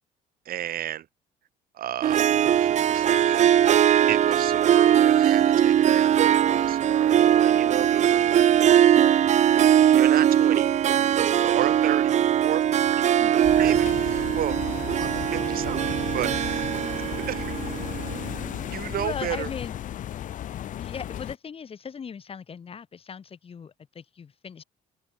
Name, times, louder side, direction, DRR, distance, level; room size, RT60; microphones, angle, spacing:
voice 1, 0.5-1.1 1.7-3.5 4.1-8.2 9.9-10.7 11.4-12.2 12.4-12.6 12.9-13.0 13.6-16.8 17.3-17.6 18.7-19.5, right 12 dB, 60° right, 2.0 m, -33 dB
Harp, 2.0-18.5, right 10 dB, 45° right, 0.6 m, -21 dB
sound 1, 13.4-21.3, left 11 dB, 50° left, 0.6 m, -34 dB
voice 2, 18.7-19.8 20.8-24.6, left 6 dB, 35° left, 1.7 m, -38 dB
open air
cardioid pair, 110°, 17 cm